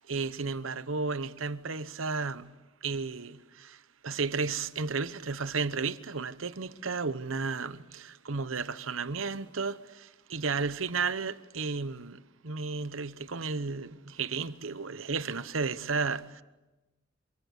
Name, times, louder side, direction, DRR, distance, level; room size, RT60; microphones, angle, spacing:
voice 1, 0.0-2.5 2.8-16.4, right 4 dB, 85° right, 1.0 m, -33 dB
27.5 x 24.5 x 8.2 m
head